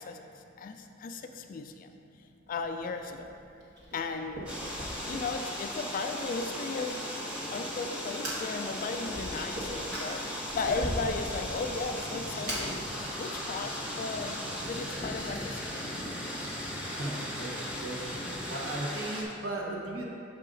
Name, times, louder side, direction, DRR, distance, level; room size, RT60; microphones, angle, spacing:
voice 1, 0.0-1.9 2.5-3.3 3.9-4.5 5.1-7.0 7.5-12.8 13.1-14.4 14.7-15.9, left 4 dB, 45° left, 6 dB, 0.3 m, -36 dB
Fire, 2.5-15.4, equal, 55° right, 1.4 m, -42 dB
sound 1, 4.5-19.2, equal, 5° right, 0.7 m, -37 dB
voice 2, 16.8-18.0 18.5-20.1, right 1 dB, 75° right, -2 dB, 0.9 m, -36 dB
6.6 x 4.8 x 3.8 m, 2.7 s
head